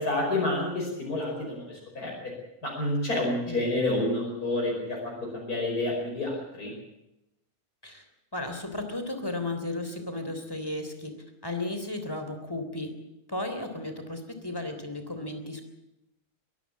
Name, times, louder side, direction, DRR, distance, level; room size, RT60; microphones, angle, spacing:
voice 1, 0.0-2.1 2.6-5.0 5.3-6.7, left 1 dB, 85° left, -2 dB, 5.8 m, -29 dB
voice 2, 8.3-11.1 11.4-12.9 13.3-15.6, left 2 dB, 15° left, 6 dB, 3.5 m, -34 dB
22.5 x 14.0 x 8.5 m, 0.87 s
omnidirectional pair, 1.6 m